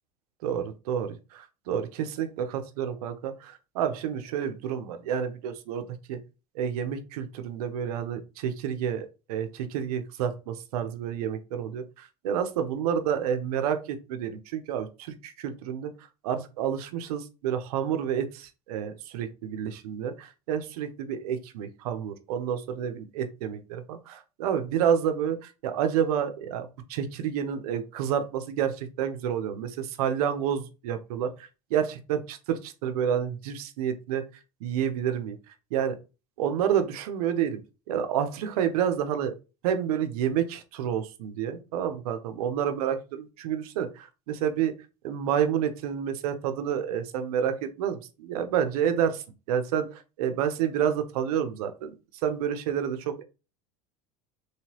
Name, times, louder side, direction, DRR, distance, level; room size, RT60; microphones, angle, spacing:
voice 1, 0.4-1.1 1.7-6.2 6.5-15.9 16.2-34.3 34.6-35.4 35.7-36.0 36.4-37.6 37.9-39.4 39.6-44.7 45.0-51.9 52.2-53.2, right 8 dB, 75° right, 9 dB, 0.7 m, -29 dB
3.1 x 2.9 x 2.8 m, 0.30 s
hypercardioid pair, 100°, 19 cm